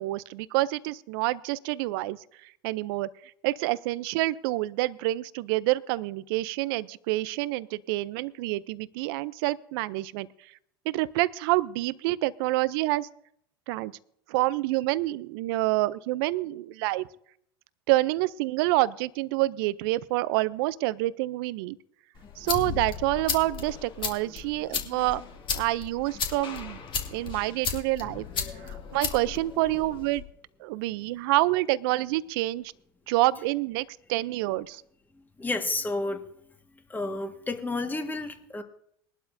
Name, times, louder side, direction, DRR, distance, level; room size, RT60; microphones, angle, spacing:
voice 1, 0.0-2.2 2.6-3.1 3.4-10.3 10.9-13.1 13.7-13.9 14.3-17.0 17.9-21.8 22.4-25.2 25.5-26.8 27.1-28.3 28.7-30.3 30.6-32.6 33.1-34.8, right 18 dB, 70° right, 18 dB, 0.6 m, -27 dB
sound 1, 22.1-30.2, left 6 dB, 40° left, 2.2 m, -35 dB
voice 2, 35.4-36.2 36.9-38.6, left 2 dB, 15° left, 6 dB, 1.6 m, -31 dB
21.0 x 12.0 x 2.7 m, 0.69 s
hypercardioid pair, 85°, 13 cm